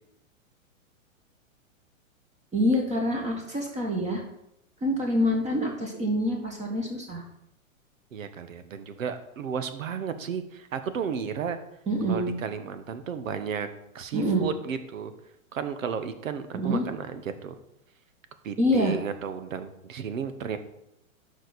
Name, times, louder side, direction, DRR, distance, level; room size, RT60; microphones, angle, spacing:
voice 1, 2.5-4.2 4.8-7.2 11.9-12.3 14.1-14.5 16.5-16.8 18.6-19.0, equal, 15° right, 1 dB, 1.6 m, -26 dB
voice 2, 8.1-11.6 12.1-13.7 13.9-15.1 15.5-17.5 18.4-20.6, right 7 dB, 70° right, 10 dB, 1.2 m, -33 dB
12.0 x 5.1 x 4.1 m, 0.80 s
hypercardioid pair, 110°, 41 cm